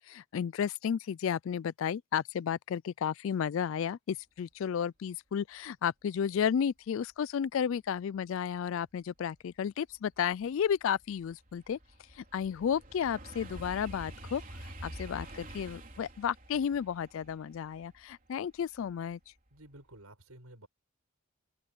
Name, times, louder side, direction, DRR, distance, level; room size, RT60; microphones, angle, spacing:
voice 1, 0.1-11.8 12.1-19.2, left 8 dB, 65° left, 0.3 m, -33 dB
sound 1, 9.5-9.6 10.1-19.1 19.5-19.9, right 1 dB, 40° right, 3.8 m, -48 dB
voice 2, 19.5-20.7, right 1 dB, 85° right, 7.4 m, -52 dB
open air
head